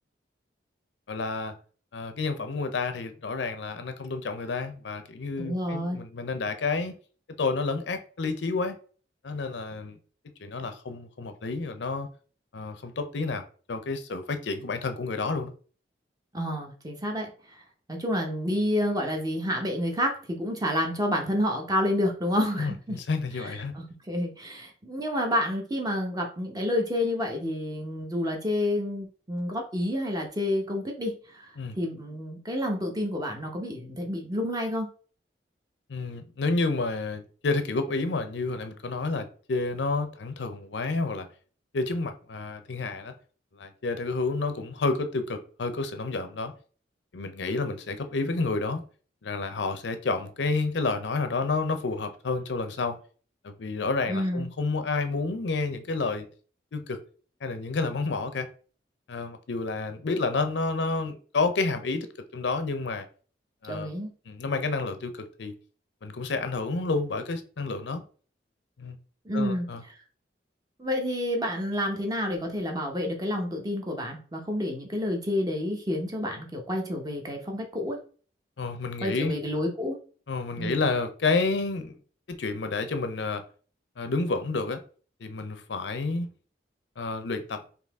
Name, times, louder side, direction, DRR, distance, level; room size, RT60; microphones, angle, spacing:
voice 1, 1.1-1.5 1.9-7.0 7.4-8.8 9.2-10.0 10.4-12.1 12.5-15.5 22.6-23.8 31.6-31.8 35.9-41.3 41.7-43.1 43.5-46.5 47.1-48.8 49.2-53.0 53.4-56.3 56.7-57.0 57.4-58.5 59.1-62.1 62.3-63.1 63.6-63.9 64.3-65.5 66.0-68.0 68.8-69.0 69.3-69.8 78.6-79.4 80.3-82.0 82.3-83.4 84.0-84.8 85.2-86.3 87.0-87.6, left 3 dB, 80° left, 0.6 m, -30 dB
voice 2, 5.4-6.0 16.3-17.3 17.9-23.0 23.7-31.5 31.8-34.9 54.1-54.5 63.7-64.1 69.2-69.7 70.8-78.0 79.0-80.0 80.6-80.8, left 1 dB, 20° right, 0.9 m, -29 dB
4.1 x 2.8 x 3.5 m
head